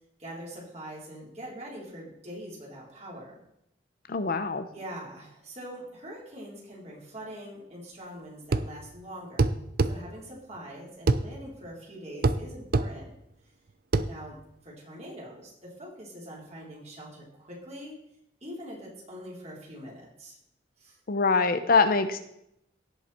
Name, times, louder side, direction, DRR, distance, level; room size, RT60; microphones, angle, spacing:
voice 1, 0.2-3.3 4.7-13.1 14.0-14.4 14.6-18.0 18.4-20.4 20.8-21.0, equal, 40° right, -4 dB, 4.1 m, -43 dB
voice 2, 4.1-4.7 21.1-22.3, left 4 dB, 55° left, 10 dB, 0.7 m, -24 dB
sound 1, 8.5-8.7 9.4-10.0 11.1-11.2 12.2-12.4 12.7-12.9 13.9-14.1, right 3 dB, 55° right, 0.5 m, -23 dB
17.0 x 5.7 x 4.4 m, 0.78 s
head